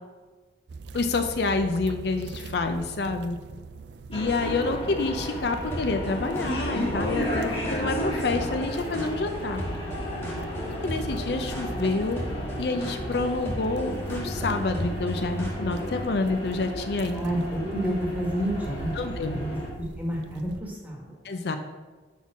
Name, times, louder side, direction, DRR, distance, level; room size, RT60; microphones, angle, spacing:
sound 1, 0.7-20.6, right 4 dB, 70° right, 0.4 m, -41 dB
voice 1, 0.9-3.4 4.1-9.6 10.8-12.2 12.6-17.2 18.9-19.4 21.2-21.6, left 3 dB, 60° left, 7 dB, 0.5 m, -28 dB
sound 2, 4.1-19.7, equal, 30° left, 1.4 m, -34 dB
sound 3, 5.7-16.0, equal, 15° left, 1.2 m, -36 dB
voice 2, 17.1-21.2, equal, 10° right, -2 dB, 1.4 m, -30 dB
5.5 x 4.3 x 5.9 m, 1.3 s
head